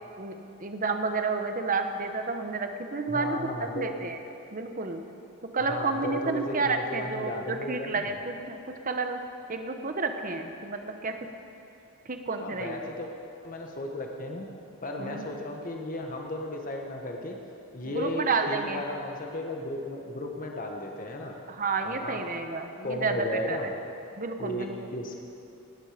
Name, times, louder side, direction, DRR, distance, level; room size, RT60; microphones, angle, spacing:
voice 1, 0.2-4.2 4.5-5.0 5.5-8.6 8.8-9.2 9.5-11.1 12.1-12.8 15.0-15.3 17.8-18.8 21.5-23.2 23.5-23.6 24.2-24.9, right 4 dB, 40° right, 6 dB, 0.9 m, -30 dB
voice 2, 3.1-3.9 5.7-8.1 12.4-13.1 13.4-14.5 14.8-17.4 17.7-21.3 21.8-22.2 22.8-23.8 24.4-25.2, left 1 dB, 40° left, 1 dB, 1.3 m, -34 dB
18.5 x 10.0 x 5.0 m, 2.8 s
head